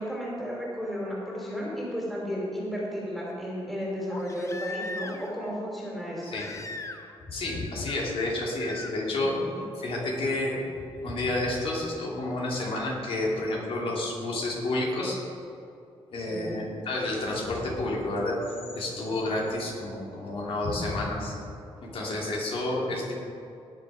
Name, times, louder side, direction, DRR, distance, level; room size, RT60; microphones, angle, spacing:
voice 1, 0.0-6.4 9.3-9.6 16.2-16.6, equal, ahead, -4 dB, 3.1 m, -33 dB
Crying sobbing, 1.4-1.5 4.1-5.4 6.3-7.2 7.4-8.0 8.6-8.9 10.5-10.6, left 3 dB, 30° left, 0.9 m, -39 dB
voice 2, 7.3-9.4 9.7-10.6 11.0-15.2 16.1-18.4 18.7-21.3 21.8-23.1, left 2 dB, 65° left, -3 dB, 3.1 m, -30 dB
18.5 x 6.8 x 4.9 m, 2.6 s
cardioid pair, 125°, 10 cm